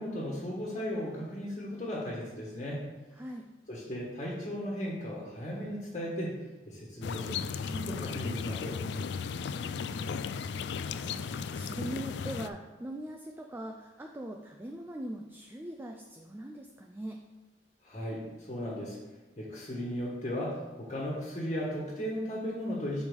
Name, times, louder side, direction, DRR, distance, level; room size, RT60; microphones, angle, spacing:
voice 1, 0.0-2.8 3.7-6.4 6.6-8.8 17.8-19.0 19.4-23.0, equal, 35° left, -5 dB, 1.5 m, -36 dB
voice 2, 3.1-3.5 9.3-10.2 10.5-17.2, right 1 dB, 10° right, 2 dB, 0.3 m, -42 dB
sound 1, 7.0-12.5, left 6 dB, 65° left, 0.3 m, -35 dB
5.1 x 4.9 x 5.2 m, 1.2 s
head